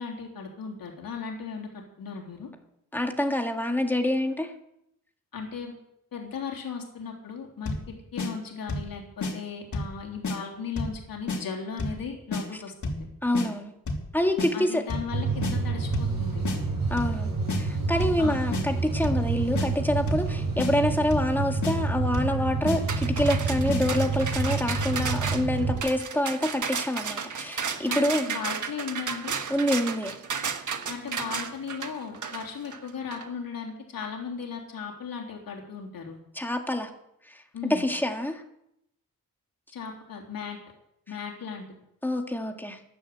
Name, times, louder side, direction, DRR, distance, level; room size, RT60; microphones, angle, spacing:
voice 1, 0.0-2.5 5.3-5.7 6.1-13.1 14.5-16.4 18.2-18.4 27.9-29.4 30.9-36.2 37.5-37.9 39.7-40.6 41.1-41.6, left 6 dB, 80° left, 0 dB, 3.4 m, -36 dB
voice 2, 2.9-4.5 13.2-13.7 14.1-14.8 16.9-28.3 29.5-30.2 36.4-36.9 37.7-38.4 42.0-42.8, left 1 dB, 5° left, 4 dB, 1.9 m, -26 dB
sound 1, 7.7-7.9 8.2-8.3 8.7-8.9 9.2-9.3 9.7-10.0 10.2-10.4 10.8-11.0 11.3-11.4 11.8-12.0 12.3-12.4 12.8-13.1 13.3-13.5 13.9-14.1 14.4-14.5 14.9-15.1 15.4-15.5 15.9-16.2 16.5-16.6 17.0-17.2 17.5-17.6 18.0-18.2 18.5-18.6 19.0-19.3 19.6-19.7 20.1-20.3 20.6-20.7 21.1-21.3 21.6-21.8 22.1-22.4 22.7-22.8 23.2-23.4 23.7-23.8, left 2 dB, 55° left, 3.3 m, -30 dB
sound 2, 15.1-25.8, right 4 dB, 80° right, 5.9 m, -28 dB
sound 3, 22.9-33.3, right 6 dB, 60° right, 1.5 m, -33 dB
13.5 x 11.0 x 8.0 m, 0.79 s
wide cardioid pair, 125°, 34 cm